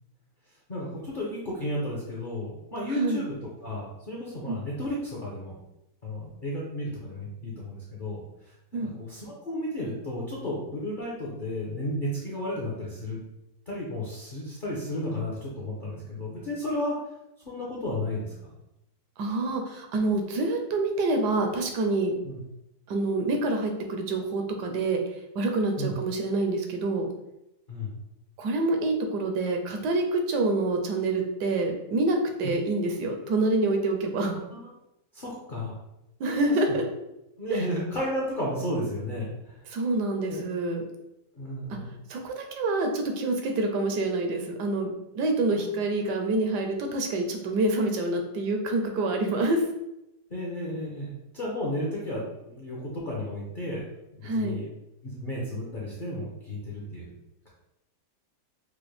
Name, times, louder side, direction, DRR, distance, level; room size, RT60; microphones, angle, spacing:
voice 1, 0.7-3.3 3.6-5.5 6.0-13.2 13.7-17.0 17.4-18.3 22.2-22.4 25.8-25.9 27.7-27.9 35.1-35.8 36.7-36.8 37.4-39.6 40.3-40.5 41.3-41.9 45.5-45.6 50.3-53.8 54.1-54.6 55.2-57.1, left 1 dB, 50° left, -5 dB, 0.6 m, -33 dB
voice 2, 19.2-22.2 22.9-25.0 25.3-27.1 28.4-34.3 36.2-36.8 37.5-37.6 39.7-40.8 41.7-41.8 42.1-49.6 54.2-54.7, right 2 dB, 75° right, 4 dB, 1.2 m, -27 dB
4.9 x 2.1 x 3.2 m, 0.89 s
omnidirectional pair, 1.8 m